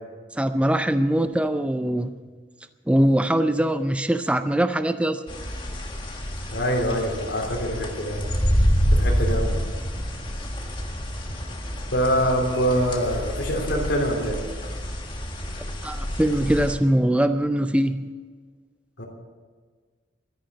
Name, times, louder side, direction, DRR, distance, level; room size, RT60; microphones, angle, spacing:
voice 1, 0.3-2.1 2.9-5.3 15.8-18.0, right 1 dB, 5° right, 9 dB, 0.4 m, -22 dB
sound 1, 5.3-16.7, equal, 25° left, 1.6 m, -27 dB
voice 2, 6.5-8.3 8.9-9.5 11.9-14.4 19.0-19.1, equal, 70° left, -1 dB, 3.3 m, -24 dB
13.5 x 10.5 x 8.5 m, 1.5 s
head